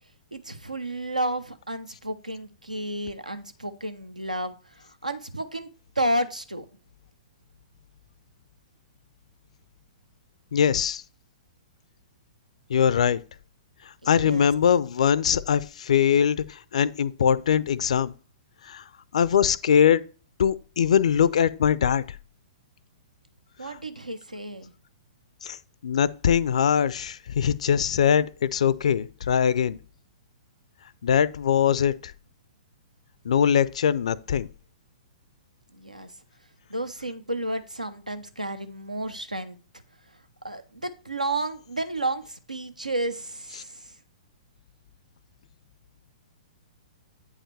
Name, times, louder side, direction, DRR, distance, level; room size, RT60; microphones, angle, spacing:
voice 1, 0.3-5.7 6.0-6.6 14.0-14.5 23.6-24.7 35.7-36.1 36.7-39.6 40.4-43.9, right 1 dB, 85° right, 0.8 m, -31 dB
voice 2, 10.5-11.0 12.7-13.2 14.1-18.1 18.7-18.8 19.1-20.0 20.4-22.0 23.6-23.7 25.4-25.6 25.8-29.8 31.0-32.1 33.2-34.5, left 8 dB, 60° left, 0.4 m, -22 dB
8.7 x 4.8 x 3.3 m
figure-of-eight pair, 115°, 4 cm